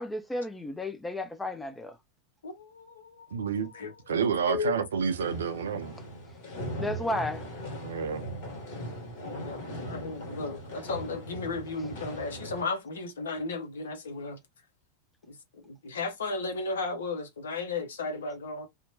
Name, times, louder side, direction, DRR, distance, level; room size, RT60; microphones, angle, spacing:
voice 1, 0.0-2.0 6.8-7.5, left 1 dB, 5° left, 0.4 m, -33 dB
voice 2, 2.4-3.9 4.5-4.7 9.2-14.4 15.3-15.4 15.6-18.7, left 3 dB, 65° left, 0.7 m, -35 dB
voice 3, 3.3-3.7 4.1-6.0 7.8-8.2, right 6 dB, 65° right, 0.5 m, -29 dB
sound 1, 5.0-12.6, equal, 50° left, 1.5 m, -39 dB
2.8 x 2.1 x 2.7 m
figure-of-eight pair, 90°, 0 cm